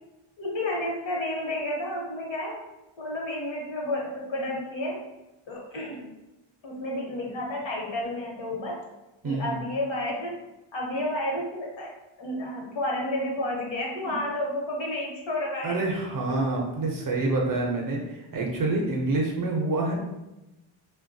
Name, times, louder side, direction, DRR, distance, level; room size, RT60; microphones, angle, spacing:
voice 1, 0.4-2.6 3.0-5.1 5.5-6.1 6.6-8.8 9.2-10.4 10.7-11.9 12.2-15.8, left 1 dB, 65° left, -1 dB, 0.9 m, -31 dB
voice 2, 9.2-9.6 15.6-19.9, right 2 dB, 45° right, -1 dB, 0.5 m, -27 dB
3.1 x 2.2 x 2.6 m, 0.98 s
wide cardioid pair, 170°, 50 cm